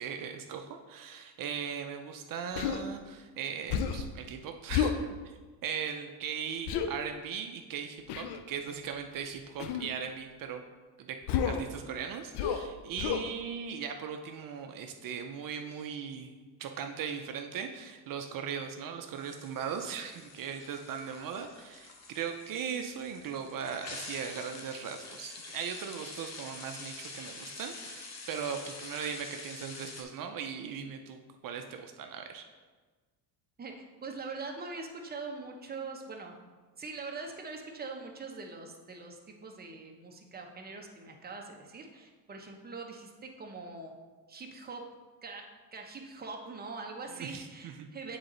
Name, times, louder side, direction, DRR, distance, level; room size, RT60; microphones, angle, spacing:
voice 1, 0.0-10.6 11.0-11.2 11.4-16.3 16.6-32.5 47.2-47.9, right 7 dB, 55° right, 5 dB, 0.6 m, -39 dB
Human voice, 2.6-2.8 3.7-4.1 4.7-5.0 6.7-6.9 8.1-8.4 9.6-9.9 11.3-11.7 12.3-12.7 13.0-13.3, left 8 dB, 75° left, 0.7 m, -30 dB
sound 1, 19.1-30.0, left 3 dB, 40° left, 1.0 m, -46 dB
voice 2, 33.6-36.3 36.8-43.9 44.3-44.8 45.2-45.4 45.7-48.2, right 4 dB, 25° right, 2 dB, 0.9 m, -43 dB
7.9 x 3.9 x 3.9 m, 1.4 s
cardioid pair, 105°, 41 cm